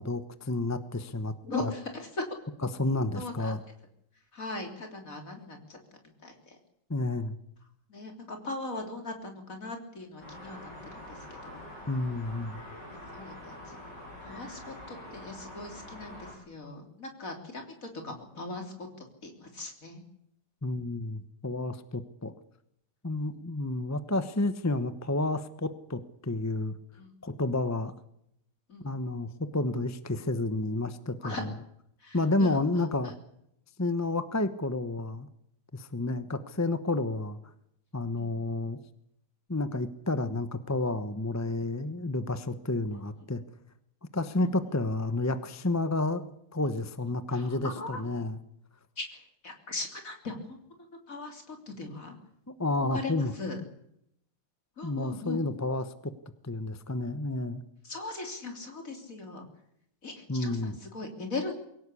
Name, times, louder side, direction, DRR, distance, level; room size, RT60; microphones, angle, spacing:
voice 1, 0.0-1.3 1.6-1.7 2.7-3.6 6.9-7.4 11.9-12.6 20.6-22.3 23.0-26.7 27.2-27.9 28.8-31.5 32.1-33.1 33.8-35.3 35.7-37.4 37.9-38.8 39.5-43.4 44.1-48.4 52.6-53.3 54.8-56.1 56.4-57.6 60.3-60.8, left 2 dB, 15° left, 11 dB, 0.8 m, -30 dB
voice 2, 1.4-2.2 3.1-3.5 4.3-5.8 6.2-6.6 7.9-11.6 13.1-13.8 14.2-20.0 23.2-23.4 27.0-27.1 28.7-28.9 31.2-31.4 32.0-32.8 36.0-36.2 38.2-38.3 43.2-43.3 44.4-44.5 47.3-48.0 49.0-50.6 51.1-52.1 52.9-53.6 54.8-55.4 57.8-59.5 60.0-61.6, left 2 dB, 50° left, 4 dB, 3.8 m, -39 dB
sound 1, 10.2-16.3, left 1 dB, 70° left, 8.4 m, -45 dB
23.0 x 17.5 x 8.5 m, 0.77 s
omnidirectional pair, 1.9 m